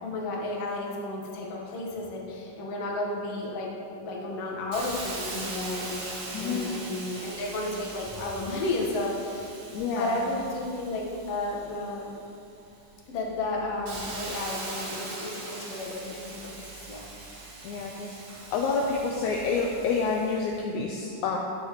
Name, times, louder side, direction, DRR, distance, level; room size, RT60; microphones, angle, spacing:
voice 1, 0.0-9.5 9.9-12.1 13.1-17.1, left 2 dB, 60° left, -2 dB, 1.9 m, -33 dB
Hiss, 4.7-12.3 12.8-20.5, right 2 dB, 65° right, 2.8 m, -41 dB
voice 2, 6.3-6.7 9.7-10.2 17.6-18.2 18.5-21.4, left 4 dB, 80° left, 0 dB, 1.8 m, -28 dB
12.5 x 8.1 x 3.0 m, 2.6 s
omnidirectional pair, 3.9 m